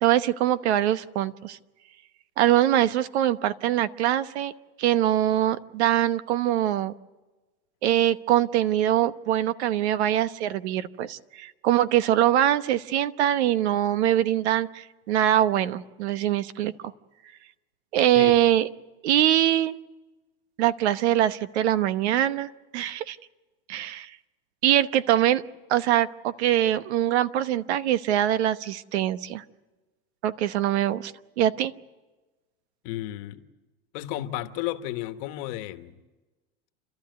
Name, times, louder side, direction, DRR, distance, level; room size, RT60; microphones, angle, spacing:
voice 1, 0.0-1.6 2.4-4.5 4.8-6.9 7.8-16.7 17.9-18.7 19.0-19.7 20.6-23.2 23.7-24.1 24.6-25.4 25.7-29.4 30.2-31.1 31.4-31.7, right 12 dB, 80° right, 1.1 m, -23 dB
voice 2, 32.8-33.4 33.9-36.0, left 14 dB, 50° left, 1.3 m, -33 dB
29.5 x 13.0 x 9.3 m
supercardioid pair, 145°, 33 cm